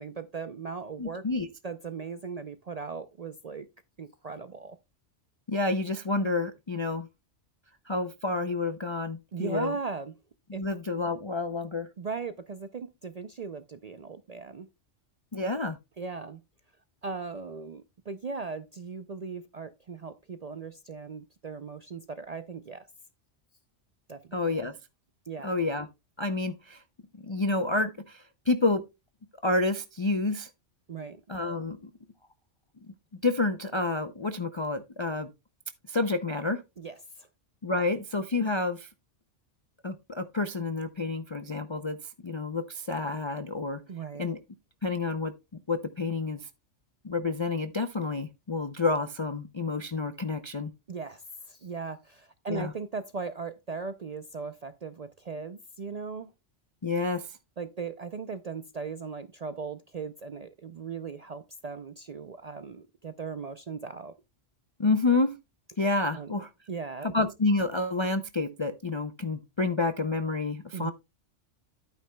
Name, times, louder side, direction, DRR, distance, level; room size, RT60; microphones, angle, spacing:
voice 1, 0.0-1.2 1.6-3.7 4.0-4.8 9.3-10.1 10.5-10.6 12.0-14.7 16.0-16.4 17.0-22.9 24.1-24.4 25.3-25.6 30.9-31.2 36.8-37.3 43.9-44.3 50.9-56.3 57.6-64.2 66.1-66.4 66.7-67.1 70.7-70.9, right 5 dB, 50° right, 0.4 m, -38 dB
voice 2, 1.0-1.5 5.5-7.1 7.9-9.8 10.5-11.9 15.3-15.8 24.3-24.7 25.4-25.9 26.2-26.8 27.2-28.8 29.4-30.5 31.3-31.8 33.2-35.3 35.9-36.6 37.6-38.9 39.8-42.0 42.2-43.8 44.2-44.4 44.8-45.3 45.7-46.5 47.0-50.7 52.5-52.7 56.8-57.3 64.8-65.4 65.8-66.5 67.0-70.9, left 3 dB, 45° left, 0.4 m, -29 dB
11.5 x 9.2 x 2.2 m
omnidirectional pair, 1.2 m